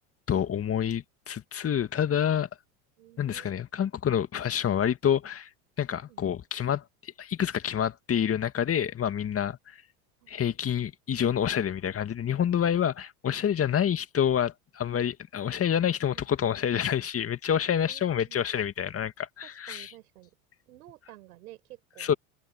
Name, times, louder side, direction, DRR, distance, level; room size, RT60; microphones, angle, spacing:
voice 1, 0.3-2.5 3.2-5.5 5.8-9.8 10.3-19.9 22.0-22.1, left 9 dB, 30° left, 2.0 m, -28 dB
voice 2, 3.0-3.6 6.1-6.2 10.2-10.3 16.1-16.3 17.6-18.4 19.4-20.4 20.7-22.2, right 16 dB, 85° right, 7.0 m, -52 dB
hypercardioid pair, 95°, 44 cm